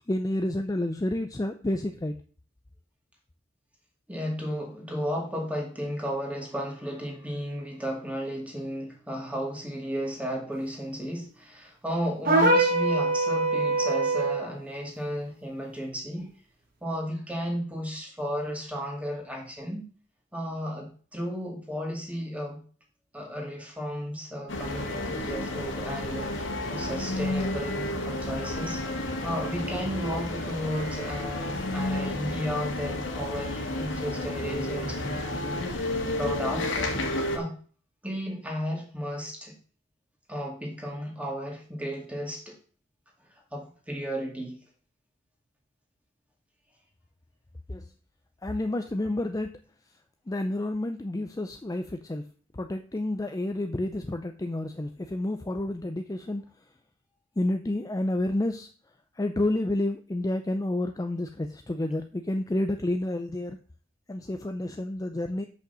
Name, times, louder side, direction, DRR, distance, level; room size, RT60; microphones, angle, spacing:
voice 1, 0.1-2.1 47.7-47.8 48.4-49.5 50.3-52.2 52.6-56.4 57.4-58.7 59.2-63.6 64.1-65.5, left 1 dB, 20° left, 7 dB, 0.4 m, -29 dB
voice 2, 4.1-16.3 16.8-19.9 20.3-22.6 23.1-36.7 37.3-37.5 38.0-39.5 40.3-42.5 43.3-44.6, equal, 5° right, 0 dB, 2.2 m, -34 dB
sound 1, 12.2-14.5, right 2 dB, 50° right, 1.8 m, -23 dB
sound 2, 24.5-37.4, left 1 dB, 75° left, 1.8 m, -31 dB
6.3 x 5.5 x 6.7 m, 0.42 s
head